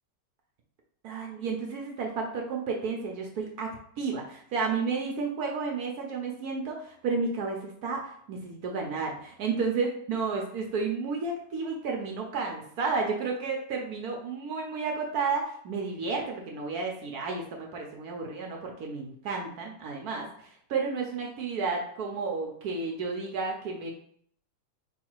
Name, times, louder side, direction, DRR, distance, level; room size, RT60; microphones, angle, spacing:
voice 1, 1.0-23.9, right 4 dB, 70° right, 0 dB, 0.9 m, -32 dB
4.6 x 2.4 x 4.5 m, 0.65 s
omnidirectional pair, 2.3 m